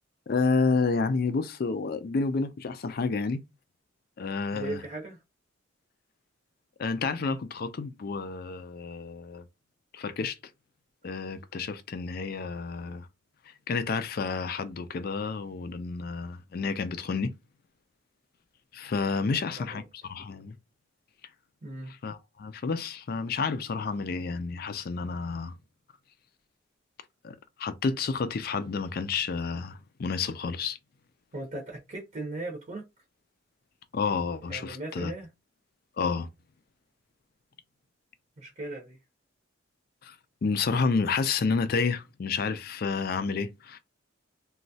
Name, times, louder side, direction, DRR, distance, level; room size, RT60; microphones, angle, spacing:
voice 1, 0.3-3.4 4.2-4.8 6.8-9.4 9.9-10.4 11.0-13.1 13.7-17.3 18.7-19.8 20.1-20.6 21.9-25.5 27.2-30.8 33.9-35.1 36.0-36.3 40.0-40.1 40.4-43.8, left 4 dB, 50° left, 0.4 m, -30 dB
voice 2, 4.5-5.2 19.2-19.8 21.6-21.9 31.3-32.9 34.5-35.3 38.4-39.0, right 2 dB, 35° right, 0.7 m, -38 dB
3.0 x 2.3 x 2.7 m
head